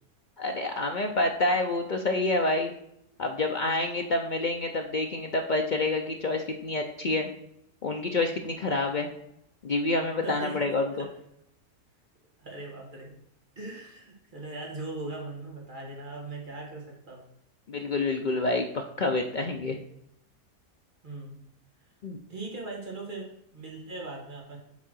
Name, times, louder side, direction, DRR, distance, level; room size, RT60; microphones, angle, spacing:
voice 1, 0.4-2.7 3.2-7.3 7.8-9.1 9.6-11.1 17.7-19.8 22.0-22.2, left 2 dB, 75° left, 4 dB, 0.4 m, -28 dB
voice 2, 10.2-11.1 12.4-13.1 13.6-17.2 21.0-21.4 22.3-24.6, right 2 dB, 30° right, -2 dB, 2.0 m, -39 dB
7.5 x 3.7 x 6.2 m, 0.76 s
omnidirectional pair, 1.7 m